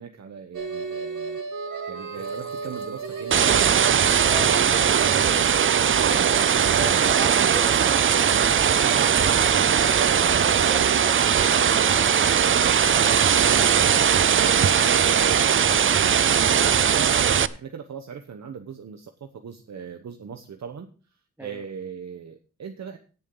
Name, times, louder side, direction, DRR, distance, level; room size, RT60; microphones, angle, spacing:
voice 1, 0.0-1.4 1.9-3.7 10.3-10.5 10.8-11.0 13.0-20.9 21.4-23.0, right 7 dB, 60° right, 6 dB, 1.0 m, -39 dB
sound 1, 0.5-15.6, right 5 dB, 80° right, 2.3 m, -34 dB
sound 2, 2.1-7.4, left 2 dB, 20° left, 1.5 m, -47 dB
sound 3, 3.3-17.5, right 8 dB, 40° right, 0.4 m, -19 dB
voice 2, 21.4-21.6, equal, 5° right, 8 dB, 1.2 m, -40 dB
17.0 x 7.2 x 3.8 m, 0.36 s
wide cardioid pair, 165°, 31 cm